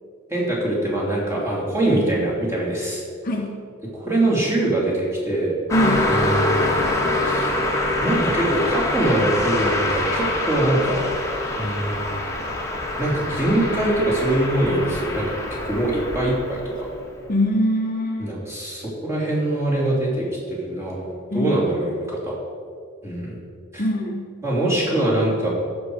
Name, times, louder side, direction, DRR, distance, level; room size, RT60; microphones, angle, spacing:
voice 1, 0.3-3.0 4.0-5.5 6.1-6.8 7.2-7.6 8.0-11.0 11.6-12.2 13.0-15.4 15.6-16.6 18.2-22.3 23.0-23.4 23.7-23.9 24.4-25.5, right 1 dB, 15° right, -6 dB, 3.0 m, -23 dB
voice 2, 3.2-3.5 5.7-6.1 17.3-18.3 21.3-21.6 23.8-24.2, left 1 dB, 45° left, 1 dB, 0.9 m, -22 dB
Car passing by, 5.7-17.1, left 1 dB, 15° left, 1.4 m, -25 dB
14.5 x 6.2 x 5.0 m, 2.2 s
head